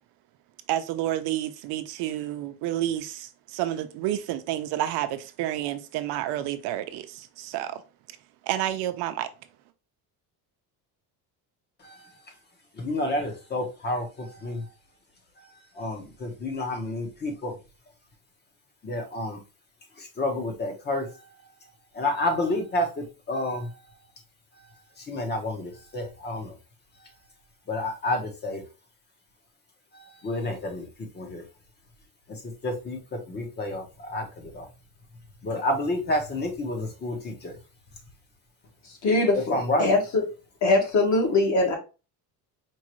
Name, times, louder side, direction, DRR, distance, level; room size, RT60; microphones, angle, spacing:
voice 1, 0.7-7.8 8.4-9.3, right 13 dB, 80° right, 0.6 m, -30 dB
voice 2, 11.8-12.1 12.7-14.7 15.4-15.5 15.7-17.5 18.8-19.4 20.0-21.1 21.9-23.7 25.0-26.6 27.7-28.6 29.9-30.9 31.1-31.4 32.3-34.7 35.4-37.5 39.3-39.9, left 1 dB, 25° left, 0.9 m, -30 dB
voice 3, 39.0-40.2 40.6-41.7, left 2 dB, 45° left, 1.4 m, -22 dB
4.5 x 2.5 x 3.0 m
cardioid pair, 155°, 39 cm